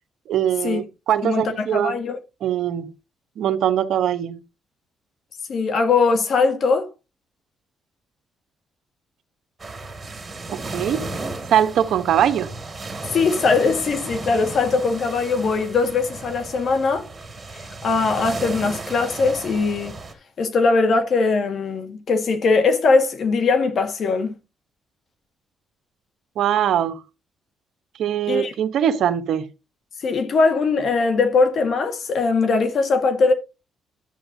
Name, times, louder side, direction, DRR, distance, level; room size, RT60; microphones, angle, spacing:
voice 1, 0.3-1.9 2.4-2.9 3.4-4.4 10.5-11.0 11.5-12.5 26.4-27.0 28.0-29.5, right 10 dB, 75° right, 1.0 m, -21 dB
voice 2, 1.2-2.2 5.5-6.9 13.1-17.0 17.8-20.0 20.4-24.4 28.3-28.5 30.0-33.3, left 4 dB, 55° left, 1.6 m, -20 dB
sound 1, 9.6-20.1, right 3 dB, 30° right, 2.6 m, -34 dB
11.0 x 8.0 x 2.7 m
cardioid pair, 90°, 0 cm